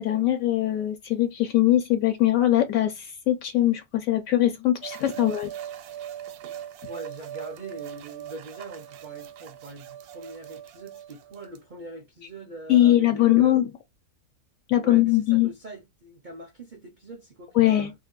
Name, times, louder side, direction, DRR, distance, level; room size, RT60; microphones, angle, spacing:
voice 1, 0.0-5.5 12.7-13.7 14.7-15.5 17.5-17.9, left 13 dB, 75° left, 1.0 m, -21 dB
sound 1, 4.8-11.6, right 10 dB, 85° right, 1.1 m, -40 dB
voice 2, 6.9-13.5 14.8-17.9, right 2 dB, 60° right, 0.5 m, -42 dB
2.7 x 2.4 x 3.6 m
omnidirectional pair, 1.6 m